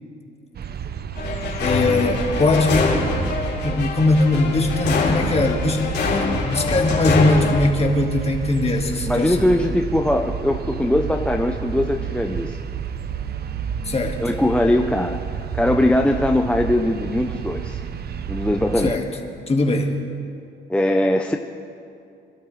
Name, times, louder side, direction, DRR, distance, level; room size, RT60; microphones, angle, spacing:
sound 1, 0.5-19.0, right 7 dB, 55° right, 0.7 m, -30 dB
sound 2, 1.1-7.7, left 3 dB, 60° left, 3.5 m, -24 dB
voice 1, 1.6-2.9 3.6-6.0 6.4-9.4 13.9-14.2 18.8-19.0 19.5-19.9, left 2 dB, 30° left, 2 dB, 1.8 m, -20 dB
voice 2, 9.0-12.6 14.2-15.2 15.5-17.8 18.3-19.0 20.7-21.4, left 1 dB, 5° left, 3 dB, 0.7 m, -20 dB
26.0 x 12.0 x 3.3 m, 2.5 s
cardioid pair, 90°, 20 cm